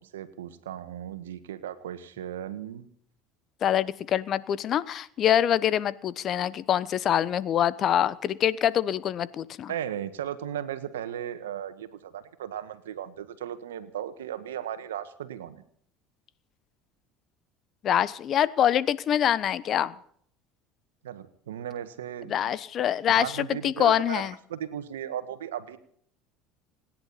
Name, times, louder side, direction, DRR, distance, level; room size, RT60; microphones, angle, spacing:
voice 1, 0.0-2.9 9.7-15.6 21.0-22.3 23.1-24.2 24.5-25.8, right 10 dB, 90° right, 11 dB, 1.5 m, -36 dB
voice 2, 3.6-9.7 17.8-19.9 22.3-24.3, left 10 dB, 45° left, 18 dB, 1.0 m, -25 dB
29.0 x 10.5 x 4.2 m, 0.63 s
hypercardioid pair, 85°, 0 cm